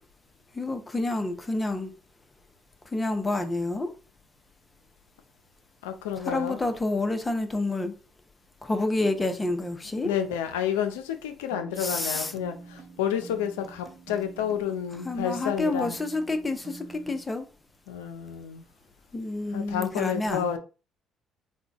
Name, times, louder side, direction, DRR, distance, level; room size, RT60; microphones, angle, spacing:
voice 1, 0.5-1.9 2.9-3.9 6.2-7.9 8.6-10.1 11.8-12.3 15.0-17.5 19.1-20.5, left 2 dB, 20° left, 0.8 m, -28 dB
voice 2, 5.8-6.6 10.0-16.0 17.9-18.6 19.5-20.6, left 9 dB, 85° left, 0.5 m, -30 dB
sound 1, 11.5-17.2, right 4 dB, 50° right, 0.8 m, -47 dB
3.8 x 2.2 x 3.4 m
hypercardioid pair, 60°, 0 cm